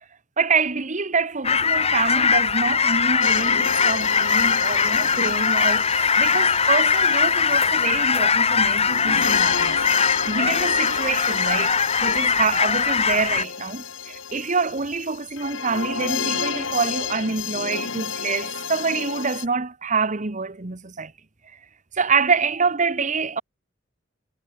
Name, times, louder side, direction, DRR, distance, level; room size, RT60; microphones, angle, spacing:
voice 1, 0.4-9.8 10.3-21.1 21.9-23.4, right 4 dB, 40° right, 1.3 m, -26 dB
sound 1, 1.4-13.4, left 6 dB, 35° left, 2.5 m, -21 dB
sound 2, 3.2-19.5, left 6 dB, 90° left, 4.2 m, -31 dB
head